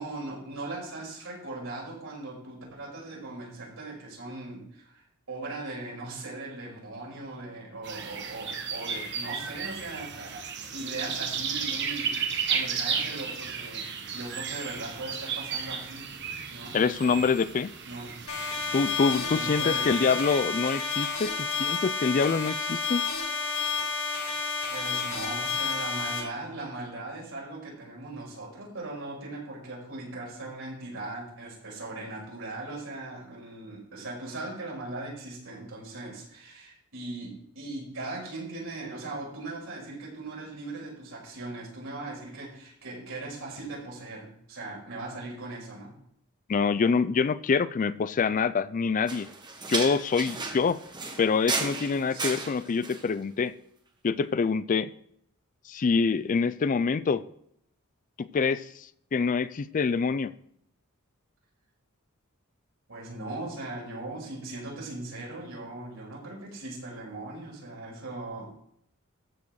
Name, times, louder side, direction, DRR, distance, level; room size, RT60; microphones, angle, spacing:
voice 1, 0.0-10.4 10.7-16.1 16.5-17.2 17.8-18.2 19.3-20.2 24.7-45.9 50.3-50.5 52.1-52.5 62.9-68.5, right 2 dB, 75° right, -3 dB, 5.5 m, -39 dB
sound 1, 7.8-20.4, right 6 dB, 55° right, 1.3 m, -34 dB
voice 2, 16.7-17.7 18.7-23.0 46.5-49.3 49.7-50.8 51.2-53.5 54.0-54.9 55.7-57.2 58.2-58.7 59.1-60.3, left 5 dB, 35° left, 16 dB, 0.4 m, -25 dB
sound 2, 18.3-26.2, left 5 dB, 80° left, 5.3 m, -30 dB
sound 3, 49.1-53.1, right 3 dB, 20° right, 1.3 m, -34 dB
14.0 x 5.0 x 6.3 m, 0.71 s
head